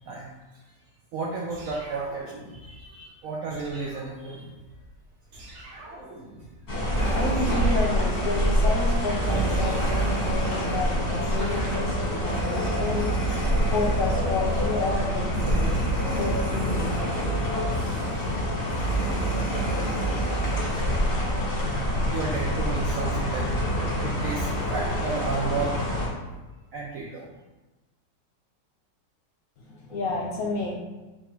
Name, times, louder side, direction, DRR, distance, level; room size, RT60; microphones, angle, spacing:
voice 1, 0.1-0.6 1.1-4.5 9.3-9.5 22.1-23.6 23.9-25.8 26.7-27.3, right 4 dB, 75° right, -2 dB, 0.8 m, -33 dB
sound 1, 1.5-3.0 3.5-5.0 5.3-6.9 7.3-13.4, right 1 dB, 50° right, 1.1 m, -44 dB
sound 2, 6.7-26.1, left 1 dB, 40° left, 1.1 m, -27 dB
sound 3, 6.9-20.8, right 4 dB, 25° right, 1.2 m, -31 dB
voice 2, 7.1-13.1 13.5-16.9 29.6-30.7, left 3 dB, 60° left, -2 dB, 1.0 m, -31 dB
3.7 x 3.1 x 4.5 m, 1.1 s
omnidirectional pair, 1.9 m